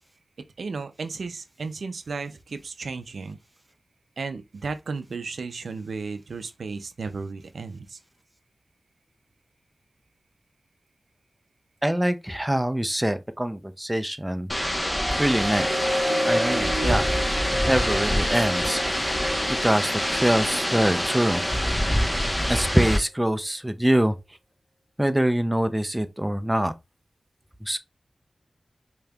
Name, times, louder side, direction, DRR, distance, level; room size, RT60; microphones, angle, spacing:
voice 1, 0.4-3.4 4.2-8.0, right 4 dB, 85° right, 0.4 m, -34 dB
voice 2, 11.8-14.5 15.2-15.7 16.2-17.1 17.7-18.8 19.6-21.4 22.5-24.2 25.0-26.7 27.6-27.8, right 1 dB, 10° right, 0.5 m, -24 dB
sound 1, 14.5-23.0, equal, 15° left, 1.0 m, -26 dB
sound 2, 14.8-21.4 22.0-22.2, equal, 30° right, 1.2 m, -31 dB
4.9 x 2.8 x 2.3 m
cardioid pair, 50°, 0 cm